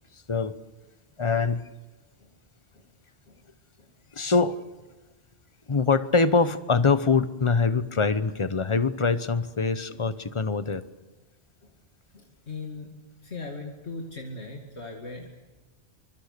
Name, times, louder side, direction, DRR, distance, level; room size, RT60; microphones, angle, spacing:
voice 1, 1.2-1.6 4.1-4.6 5.7-10.8, left 4 dB, 30° left, 13 dB, 0.9 m, -24 dB
voice 2, 12.1-12.9 13.2-15.3, left 3 dB, 85° left, 0 dB, 2.7 m, -39 dB
26.0 x 24.5 x 6.7 m, 1.2 s
omnidirectional pair, 1.1 m